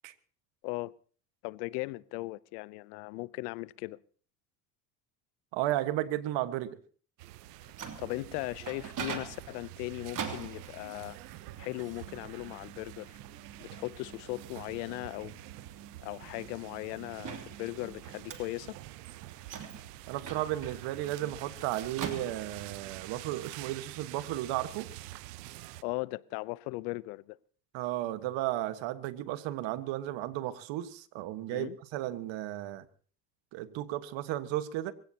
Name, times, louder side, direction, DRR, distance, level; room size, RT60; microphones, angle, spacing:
voice 1, 1.4-4.0 8.0-11.2 11.6-13.2 13.6-15.4 16.0-18.8 25.8-27.4 31.5-31.7, left 22 dB, 80° left, 0.8 m, -38 dB
voice 2, 5.5-6.8 20.1-24.9 27.7-32.9 33.5-34.9, right 14 dB, 70° right, 1.6 m, -34 dB
sound 1, 7.2-25.8, right 17 dB, 90° right, 0.9 m, -47 dB
Microwave oven, 7.4-22.9, right 7 dB, 40° right, 2.9 m, -45 dB
23.5 x 16.5 x 2.9 m
supercardioid pair, 85°, 47 cm